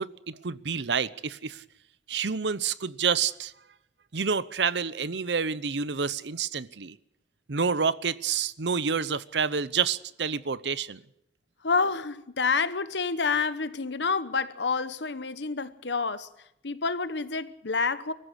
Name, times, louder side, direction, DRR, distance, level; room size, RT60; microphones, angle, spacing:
voice 1, 0.0-1.6 2.1-3.5 4.1-7.0 7.5-11.0, right 6 dB, 75° right, 0.8 m, -28 dB
voice 2, 11.6-16.3 16.6-18.1, left 4 dB, 80° left, 1.1 m, -28 dB
24.0 x 14.5 x 8.2 m
head